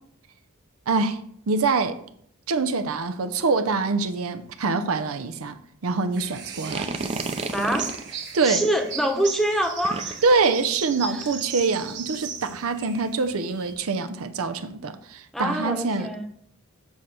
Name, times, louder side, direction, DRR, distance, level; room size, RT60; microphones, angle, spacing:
voice 1, 0.9-1.2 1.5-2.0 2.5-6.9 8.3-8.6 10.2-16.1, right 4 dB, 85° right, 0.6 m, -25 dB
sound 1, 6.1-13.7, right 6 dB, 55° right, 1.3 m, -37 dB
sound 2, 6.5-8.1 9.8-10.3, right 3 dB, 30° right, 0.6 m, -31 dB
voice 2, 7.5-8.2 8.4-10.2 11.1-11.2 15.3-16.2, right 1 dB, ahead, 0.9 m, -25 dB
7.3 x 4.3 x 6.5 m
head